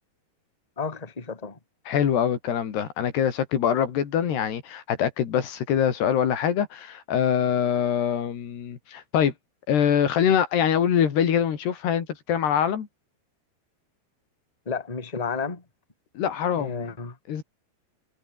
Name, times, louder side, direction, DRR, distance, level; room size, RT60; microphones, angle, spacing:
voice 1, 0.8-1.6 14.7-15.6 16.6-17.1, left 5 dB, 10° left, 2.2 m, -32 dB
voice 2, 1.9-9.3 9.7-12.9 16.2-16.9 17.3-17.4, left 9 dB, 90° left, 5.0 m, -24 dB
omnidirectional pair, 4.6 m